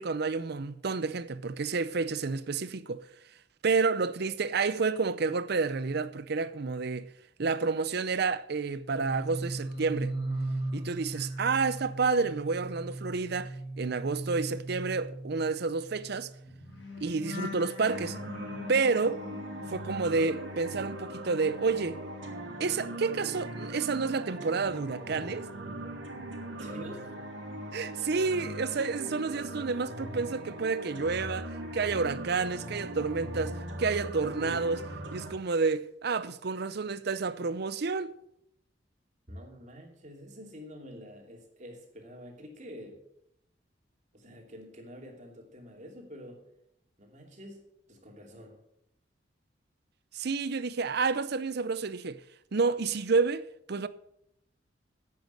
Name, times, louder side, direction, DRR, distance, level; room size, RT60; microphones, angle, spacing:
voice 1, 0.0-3.0 3.6-7.1 7.4-10.1 10.7-16.3 17.0-18.2 18.7-19.2 19.7-22.0 22.6-25.5 27.7-34.9 35.1-38.1 50.1-52.2 52.5-53.9, right 4 dB, 60° right, 0.6 m, -30 dB
sound 1, 8.8-21.1 21.4-23.4 23.7-24.1, right 1 dB, 90° left, 5.3 m, -39 dB
sound 2, 17.9-35.3, right 1 dB, 85° right, 2.6 m, -40 dB
voice 2, 26.5-27.1 39.3-43.0 44.1-46.5 47.0-48.6, equal, 40° right, 2.8 m, -47 dB
10.5 x 8.5 x 6.6 m
head